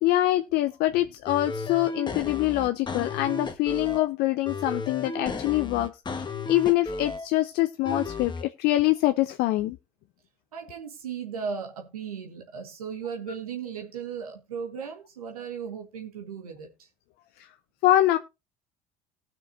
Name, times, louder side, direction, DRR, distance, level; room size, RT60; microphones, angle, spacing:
voice 1, 0.0-9.8 17.4-17.5 17.8-18.2, left 15 dB, 60° left, 0.6 m, -24 dB
sound 1, 1.3-4.1 4.5-7.3 7.9-8.4, left 3 dB, 25° left, 1.3 m, -34 dB
voice 2, 10.5-16.9, right 6 dB, 85° right, 1.6 m, -36 dB
19.0 x 6.3 x 2.6 m
hypercardioid pair, 65°, 18 cm